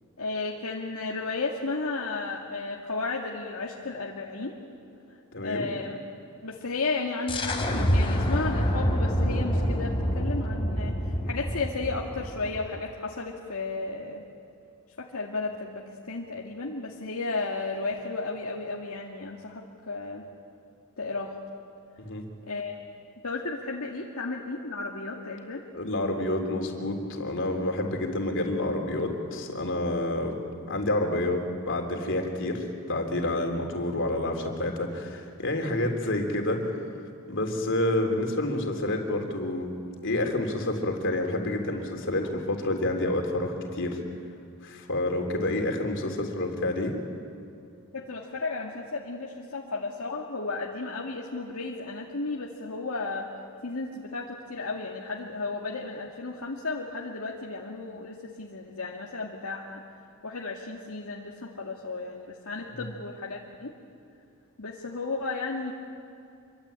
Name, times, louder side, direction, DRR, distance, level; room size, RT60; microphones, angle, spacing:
voice 1, 0.2-4.6 5.4-6.0 6.4-14.2 15.0-20.3 21.0-21.4 22.5-22.8 23.2-25.6 42.2-42.3 47.9-53.3 53.6-59.8 60.2-63.7 64.6-65.7, left 3 dB, 80° left, -2 dB, 2.2 m, -34 dB
voice 2, 5.3-5.7 22.0-22.3 25.7-30.4 30.7-36.6 37.3-39.7 40.0-44.0 44.6-46.9, left 1 dB, 60° left, 3 dB, 3.7 m, -28 dB
sound 1, 7.3-12.8, equal, 25° left, 3.1 m, -27 dB
26.5 x 24.0 x 8.9 m, 2.6 s
head